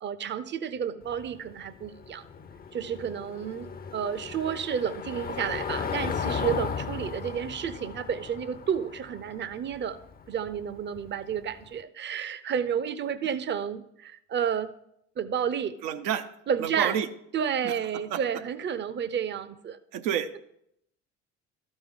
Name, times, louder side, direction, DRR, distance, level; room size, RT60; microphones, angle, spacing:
voice 1, 0.0-2.2 2.7-10.0 10.3-14.7 15.2-15.8 16.5-17.0 17.3-19.8, right 8 dB, 30° right, 15 dB, 0.6 m, -31 dB
Car passing by / Engine, 1.0-11.7, left 6 dB, 25° left, 0.6 m, -36 dB
voice 2, 15.8-16.2 16.6-17.1 17.6-17.7 18.1-18.2 19.9-20.4, right 9 dB, 75° right, 8 dB, 0.7 m, -29 dB
12.5 x 5.3 x 3.7 m, 0.75 s
hypercardioid pair, 60°, 37 cm